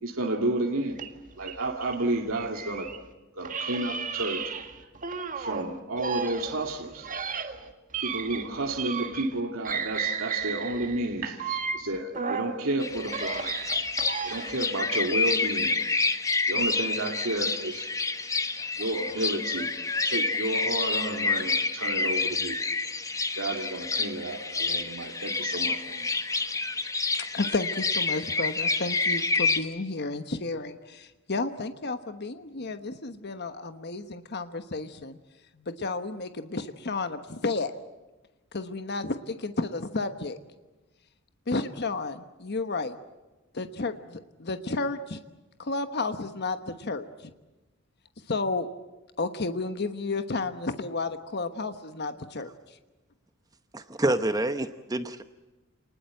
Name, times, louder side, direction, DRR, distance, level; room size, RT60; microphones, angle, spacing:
voice 1, 0.0-1.0 1.4-2.9 3.3-4.5 5.4-7.1 8.0-13.5 14.2-15.8 16.5-17.9 18.8-19.7 20.0-22.6 23.3-26.1, right 1 dB, 75° right, 1 dB, 2.3 m, -31 dB
sound 1, 0.9-3.0 3.4-5.6 6.0-9.4 9.6-12.6 13.0-14.7, right 6 dB, 40° right, 1.8 m, -34 dB
sound 2, 12.8-29.6, left 3 dB, 15° left, 1.1 m, -28 dB
voice 2, 27.1-35.2 35.6-37.7 38.5-40.4 41.5-43.0 43.5-45.2 45.6-47.1 48.3-48.7 49.2-52.5, left 3 dB, 55° left, 9 dB, 1.2 m, -32 dB
voice 3, 53.7-55.2, right 1 dB, 20° right, 10 dB, 0.9 m, -27 dB
27.5 x 20.0 x 7.8 m, 1.1 s
head